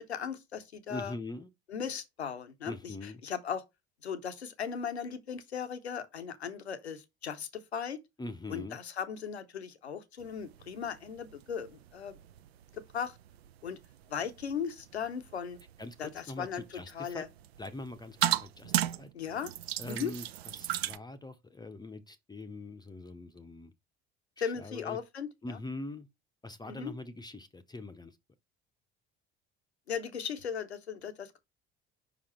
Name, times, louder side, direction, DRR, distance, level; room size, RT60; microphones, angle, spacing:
voice 1, 0.0-1.1 1.7-3.6 4.0-8.0 8.5-12.2 12.7-13.2 13.6-13.8 14.1-15.6 16.0-17.3 19.1-19.5 19.9-20.1 24.4-25.6 26.7-26.9 29.9-31.4, left 7 dB, 80° left, 0.8 m, -37 dB
voice 2, 0.9-1.5 2.6-3.2 8.2-8.8 15.8-17.3 17.6-19.1 19.8-20.3 20.5-23.7 24.4-25.0 25.4-26.1 26.4-28.2, left 2 dB, 15° left, 0.6 m, -43 dB
sound 1, 10.2-21.0, right 12 dB, 75° right, 0.5 m, -38 dB
5.3 x 5.0 x 4.2 m
figure-of-eight pair, 55°, 32 cm